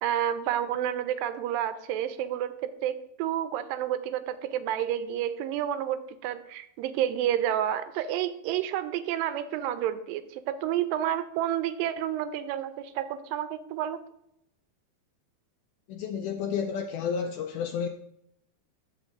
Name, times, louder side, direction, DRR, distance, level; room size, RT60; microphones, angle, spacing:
voice 1, 0.0-14.0, right 11 dB, 80° right, 11 dB, 2.3 m, -30 dB
voice 2, 15.9-17.9, left 7 dB, 90° left, 4 dB, 1.8 m, -31 dB
15.0 x 5.2 x 2.5 m, 0.75 s
omnidirectional pair, 4.1 m